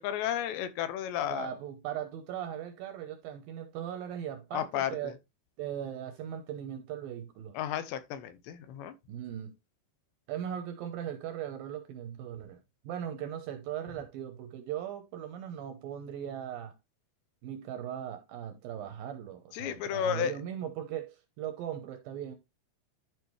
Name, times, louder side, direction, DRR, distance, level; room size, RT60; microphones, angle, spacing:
voice 1, 0.0-1.6 4.5-5.1 7.5-8.9 19.5-20.4, left 10 dB, 90° left, 3.1 m, -33 dB
voice 2, 1.3-5.1 5.6-7.6 9.1-9.5 10.3-12.6 12.8-16.8 17.4-22.4, right 10 dB, 75° right, 2.2 m, -39 dB
12.0 x 4.7 x 3.1 m
omnidirectional pair, 5.0 m